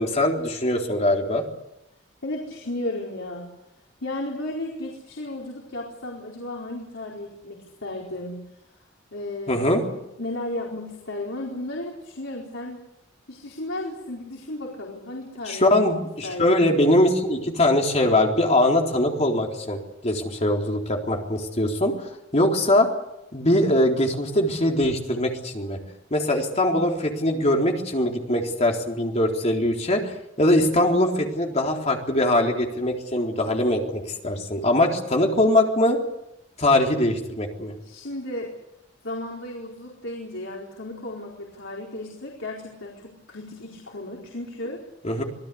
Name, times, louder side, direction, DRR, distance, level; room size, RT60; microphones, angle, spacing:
voice 1, 0.0-1.4 9.5-9.8 15.5-22.9 23.3-25.8 26.1-36.0 36.6-37.7 45.0-45.2, left 1 dB, 35° left, 1 dB, 3.9 m, -22 dB
voice 2, 2.2-3.5 4.0-8.4 9.1-12.8 13.3-15.8 16.2-16.6 37.8-38.5 39.0-44.8, left 1 dB, 80° left, -2 dB, 4.5 m, -34 dB
26.5 x 18.5 x 8.6 m, 0.87 s
head